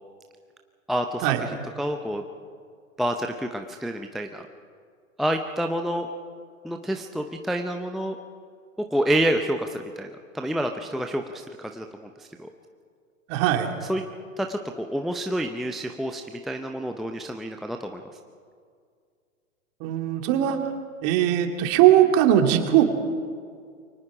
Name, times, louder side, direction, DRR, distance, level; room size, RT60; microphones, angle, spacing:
voice 1, 0.9-2.2 3.0-4.4 5.2-6.1 6.6-8.2 8.8-10.1 10.3-12.5 13.8-14.0 14.4-18.0, right 1 dB, ahead, 5 dB, 0.6 m, -28 dB
voice 2, 13.3-13.7 19.8-20.6 21.0-22.8, right 11 dB, 35° right, 5 dB, 2.6 m, -19 dB
29.0 x 24.0 x 5.0 m, 2.1 s
figure-of-eight pair, 105°, 41 cm